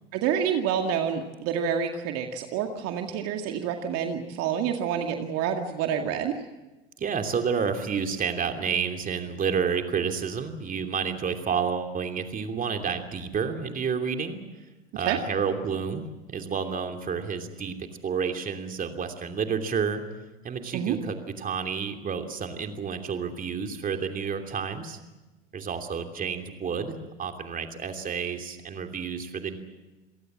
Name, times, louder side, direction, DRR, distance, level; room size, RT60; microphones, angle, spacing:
voice 1, 0.1-6.4 15.0-15.2 20.7-20.9, right 8 dB, 50° right, 4 dB, 2.2 m, -28 dB
voice 2, 7.0-14.4 14.9-20.0 20.4-25.0 25.5-29.6, right 6 dB, 30° right, 5 dB, 2.9 m, -30 dB
28.0 x 18.5 x 7.5 m, 1.1 s
hypercardioid pair, 90°, 30 cm